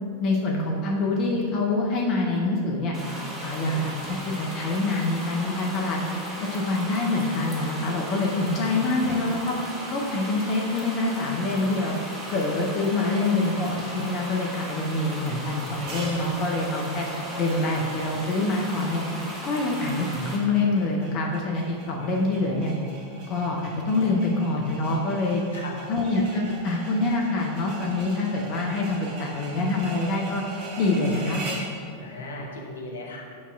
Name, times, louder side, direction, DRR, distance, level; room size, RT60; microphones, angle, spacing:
voice 1, 0.2-2.9 3.4-6.0 6.5-9.6 9.9-11.9 12.3-17.1 17.4-19.0 19.4-22.7 23.3-25.4 25.9-30.4 30.8-31.4, left 2 dB, 40° left, -1 dB, 0.7 m, -25 dB
sound 1, 2.9-20.4, equal, 20° right, 1.5 m, -36 dB
voice 2, 8.7-9.1 25.5-26.0 31.9-33.2, left 2 dB, 70° left, -1 dB, 0.9 m, -38 dB
sound 2, 15.7-31.8, right 2 dB, 45° right, 1.2 m, -41 dB
8.4 x 5.5 x 2.4 m, 2.3 s
figure-of-eight pair, 90°, 0 cm